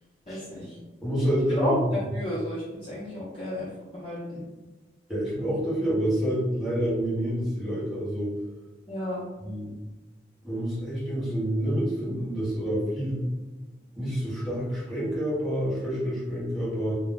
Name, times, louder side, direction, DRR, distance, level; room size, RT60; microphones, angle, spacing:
voice 1, 0.3-0.8 1.6-4.4 8.9-9.2, left 1 dB, 30° left, -10 dB, 0.9 m, -31 dB
voice 2, 1.0-1.7 5.1-8.3 9.4-9.7 10.4-13.2 14.0-16.9, equal, ahead, -12 dB, 1.3 m, -28 dB
2.4 x 2.2 x 3.9 m, 1.2 s
head